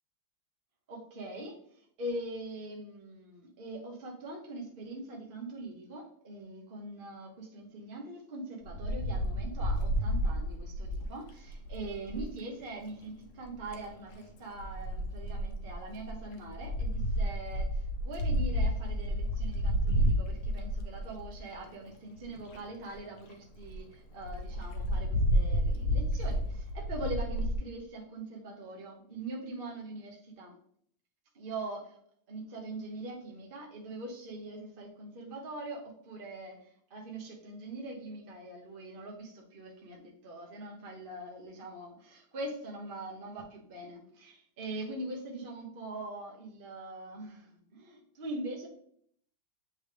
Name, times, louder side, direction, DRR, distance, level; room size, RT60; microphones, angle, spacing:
voice 1, 0.9-1.6 2.0-30.5 31.3-31.9 32.3-48.7, right 2 dB, 40° right, -1 dB, 0.7 m, -42 dB
Wind, 8.7-12.3 13.4-13.9 14.6-21.5 22.2-22.3 22.5-22.6 22.9-23.0 23.3-23.4 23.6-23.8 24.2-27.5, equal, 70° left, 0.7 m, -31 dB
8.9 x 3.3 x 3.3 m, 0.65 s
omnidirectional pair, 2.4 m